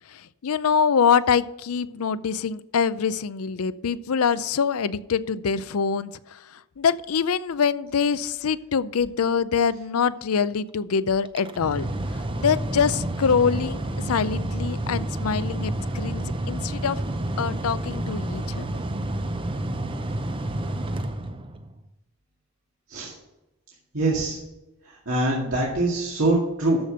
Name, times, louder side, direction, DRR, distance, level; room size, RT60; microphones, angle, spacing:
voice 1, 0.4-6.1 6.8-11.9 12.4-17.0 17.4-18.7, left 6 dB, 90° left, 15 dB, 0.5 m, -24 dB
Mechanical fan, 11.3-21.8, right 1 dB, 25° right, 0.6 m, -29 dB
voice 2, 23.9-24.4 25.1-26.8, right 2 dB, 80° right, -4 dB, 2.2 m, -23 dB
13.5 x 5.1 x 6.5 m, 0.97 s
head